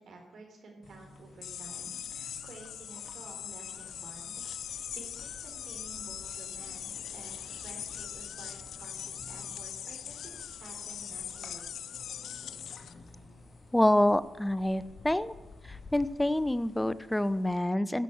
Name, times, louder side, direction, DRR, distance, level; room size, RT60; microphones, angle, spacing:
voice 1, 0.0-11.7, right 3 dB, 65° right, 1 dB, 3.5 m, -52 dB
sound 1, 0.8-17.6, left 3 dB, 55° left, 2.1 m, -54 dB
sound 2, 1.4-12.9, left 9 dB, 75° left, 0.4 m, -41 dB
sound 3, 3.7-16.8, left 1 dB, 35° left, 3.8 m, -57 dB
voice 2, 13.7-15.3 15.7-18.0, left 1 dB, 10° left, 16 dB, 0.7 m, -27 dB
15.0 x 6.2 x 7.9 m, 1.1 s
supercardioid pair, 50°, 0 cm